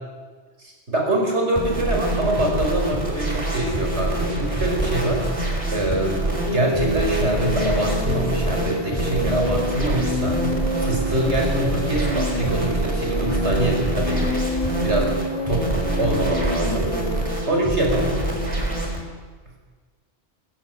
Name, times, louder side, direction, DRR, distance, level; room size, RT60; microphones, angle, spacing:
voice 1, 0.6-5.3 5.7-10.4 10.8-14.2 14.8-16.9 17.5-18.2, right 1 dB, 85° right, 1 dB, 5.5 m, -24 dB
sound 1, 1.6-19.0, right 1 dB, 30° right, 4.0 m, -26 dB
sound 2, 6.5-17.3, left 1 dB, 35° left, 4.8 m, -28 dB
22.5 x 14.5 x 9.4 m, 1.5 s
omnidirectional pair, 1.1 m